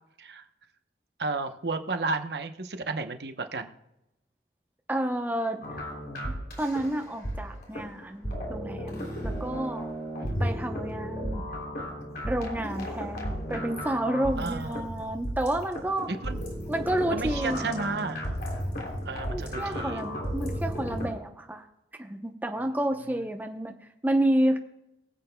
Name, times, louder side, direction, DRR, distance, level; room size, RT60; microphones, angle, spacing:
voice 1, 1.2-3.7 10.2-10.4 14.4-14.9 16.2-16.4 17.1-18.2 19.1-20.1 23.2-23.3, right 3 dB, 65° right, 8 dB, 0.9 m, -33 dB
voice 2, 4.9-5.6 6.6-9.9 10.4-11.5 12.2-16.1 16.7-17.7 19.3-21.6 22.0-23.7 24.0-24.6, right 1 dB, 10° right, 4 dB, 0.8 m, -30 dB
sound 1, 5.6-21.1, equal, 60° left, 3.2 m, -34 dB
23.0 x 7.8 x 2.3 m, 0.88 s
head